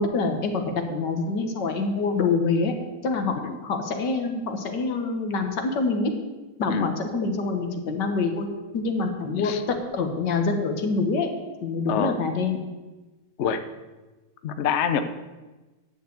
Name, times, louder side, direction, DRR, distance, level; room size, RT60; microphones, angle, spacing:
voice 1, 0.0-2.7 3.0-3.3 3.6-6.1 6.6-8.5 8.7-11.3 11.6-12.6, left 4 dB, 85° left, 5 dB, 2.0 m, -26 dB
voice 2, 11.9-12.2 13.4-13.6 14.4-15.0, left 7 dB, 55° left, 9 dB, 0.8 m, -25 dB
10.0 x 6.8 x 8.1 m, 1.2 s
omnidirectional pair, 1.8 m